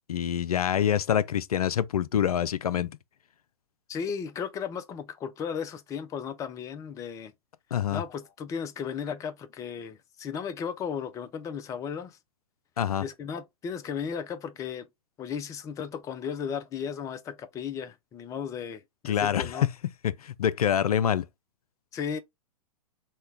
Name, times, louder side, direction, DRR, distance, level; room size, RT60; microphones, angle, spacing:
voice 1, 0.1-2.9 7.7-8.0 12.8-13.0 19.0-19.5 20.2-21.2, left 9 dB, 75° left, 0.4 m, -26 dB
voice 2, 3.9-7.3 7.9-12.2 13.0-14.9 15.2-19.7 21.9-22.2, left 7 dB, 15° left, 0.4 m, -35 dB
4.2 x 2.2 x 3.3 m
figure-of-eight pair, 110°, 19 cm